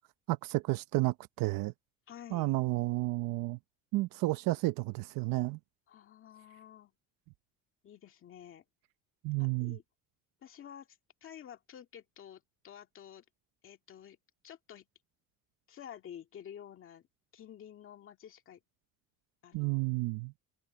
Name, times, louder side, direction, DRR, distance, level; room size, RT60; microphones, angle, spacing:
voice 1, 0.3-1.7 2.3-3.6 3.9-5.6 9.2-9.8 19.5-20.3, right 20 dB, 85° right, 0.8 m, -31 dB
voice 2, 2.1-2.5 5.9-6.9 7.8-8.6 9.4-9.8 10.4-10.9 11.2-13.2 13.6-14.2 14.4-14.9 15.7-17.1 17.3-18.6 19.4-19.8, left 9 dB, 40° left, 2.0 m, -50 dB
cardioid pair, 170°, 33 cm